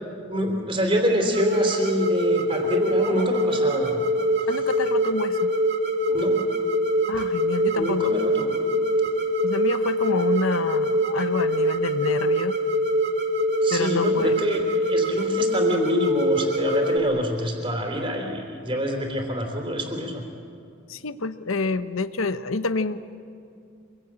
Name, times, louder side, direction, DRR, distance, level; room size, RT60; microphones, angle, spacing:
voice 1, 0.3-4.0 6.1-6.4 7.7-8.7 13.6-14.6 14.9-20.2, equal, 25° right, 3 dB, 3.4 m, -26 dB
sound 1, 1.3-17.0, equal, 55° right, 1.9 m, -24 dB
voice 2, 4.5-5.5 7.1-8.1 9.4-12.6 13.7-14.4 20.9-23.1, left 3 dB, 85° left, 12 dB, 0.9 m, -28 dB
26.0 x 22.5 x 8.9 m, 2.5 s
head